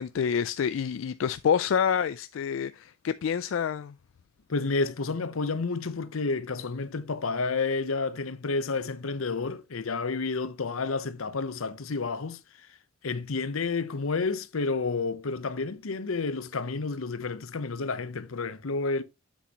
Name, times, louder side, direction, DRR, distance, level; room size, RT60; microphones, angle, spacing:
voice 1, 0.0-3.9, left 7 dB, 70° left, 0.3 m, -27 dB
voice 2, 4.5-12.4 13.0-19.0, left 4 dB, 85° left, 0.8 m, -30 dB
7.6 x 6.7 x 2.9 m
head